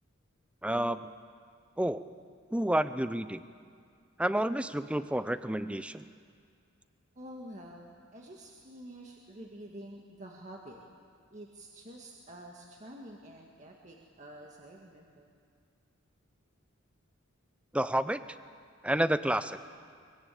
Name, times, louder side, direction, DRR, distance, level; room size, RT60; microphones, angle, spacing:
voice 1, 0.6-1.0 1.8-2.0 2.5-3.4 4.2-6.0 17.7-18.2 18.8-19.6, right 1 dB, 5° right, 12 dB, 0.6 m, -29 dB
voice 2, 7.2-10.8 11.3-15.3, right 1 dB, 35° right, -1 dB, 1.9 m, -48 dB
23.5 x 22.5 x 8.4 m, 2.2 s
head